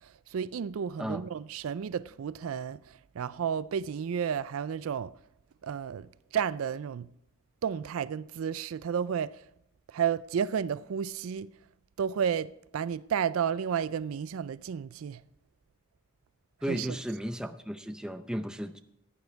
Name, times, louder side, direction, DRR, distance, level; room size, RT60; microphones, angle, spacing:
voice 1, 0.0-5.1 5.6-7.1 7.6-9.4 9.9-11.5 12.0-15.2 16.7-17.0, right 7 dB, 70° right, 0.4 m, -32 dB
voice 2, 16.6-18.8, equal, 5° right, 0.5 m, -34 dB
15.0 x 9.2 x 4.5 m
head